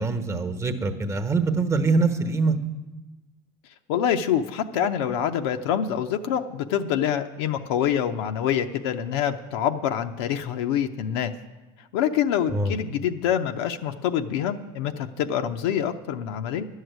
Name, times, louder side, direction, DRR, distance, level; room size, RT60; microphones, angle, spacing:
voice 1, 0.0-2.6 12.5-12.8, right 3 dB, 25° right, 7 dB, 1.1 m, -24 dB
voice 2, 3.9-11.3 11.9-16.7, left 9 dB, 85° left, 5 dB, 0.6 m, -26 dB
11.0 x 6.5 x 9.3 m, 1.1 s
supercardioid pair, 100°, 13 cm